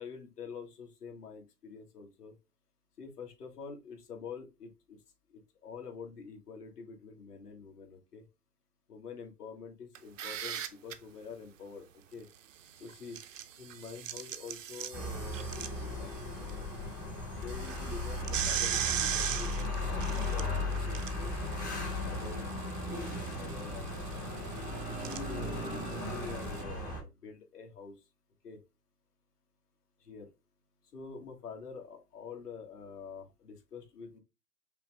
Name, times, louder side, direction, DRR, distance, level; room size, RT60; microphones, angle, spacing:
voice 1, 0.0-2.4 3.0-5.0 5.3-8.3 8.9-12.3 12.8-13.2 13.6-16.1 16.4-16.7 17.4-21.4 21.9-24.4 25.0-28.0 28.4-28.6 30.0-30.3 30.9-34.2, left 5 dB, 75° left, 1 dB, 1.7 m, -47 dB
sound 1, 10.0-10.9 12.9-16.5 16.9-17.0 17.4-26.6, right 10 dB, 55° right, 0.6 m, -39 dB
sound 2, 14.9-27.0, left 2 dB, 15° left, 0.5 m, -36 dB
5.5 x 2.1 x 3.4 m, 0.25 s
hypercardioid pair, 150°, 47 cm